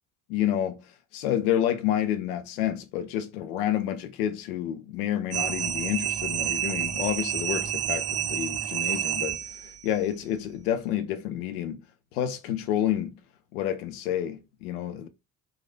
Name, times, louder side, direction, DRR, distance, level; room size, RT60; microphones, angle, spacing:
voice 1, 0.3-0.8 1.1-11.8 12.1-13.1 13.5-15.1, left 11 dB, 80° left, 0.6 m, -29 dB
sound 1, 5.3-9.8, right 11 dB, 35° right, 0.5 m, -29 dB
3.0 x 2.6 x 2.4 m
hypercardioid pair, 60°, 43 cm